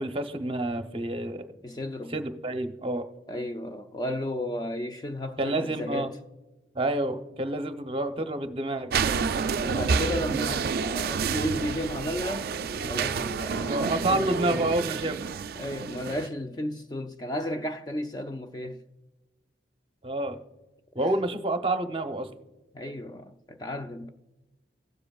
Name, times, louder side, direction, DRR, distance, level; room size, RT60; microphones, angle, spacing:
voice 1, 0.0-1.5 2.1-3.0 5.4-6.1 6.7-8.9 13.6-15.2 20.0-20.4 20.9-22.3, right 2 dB, 30° right, 0.7 m, -28 dB
voice 2, 1.6-2.2 3.3-6.2 9.6-14.7 15.6-18.8 21.0-21.1 22.7-24.1, left 1 dB, 20° left, 0.4 m, -34 dB
sound 1, 8.9-16.3, right 5 dB, 50° right, 0.3 m, -29 dB
17.5 x 7.6 x 2.3 m
head